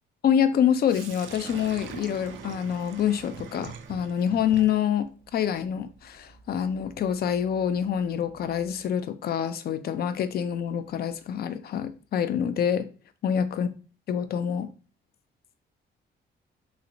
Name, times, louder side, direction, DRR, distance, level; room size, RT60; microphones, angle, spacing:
voice 1, 0.2-12.9 13.2-13.7 14.1-14.7, left 8 dB, 50° left, 0.4 m, -26 dB
Sink (filling or washing), 0.9-8.8, right 7 dB, 75° right, 0.4 m, -45 dB
3.1 x 2.8 x 2.5 m
cardioid pair, 90°, 20 cm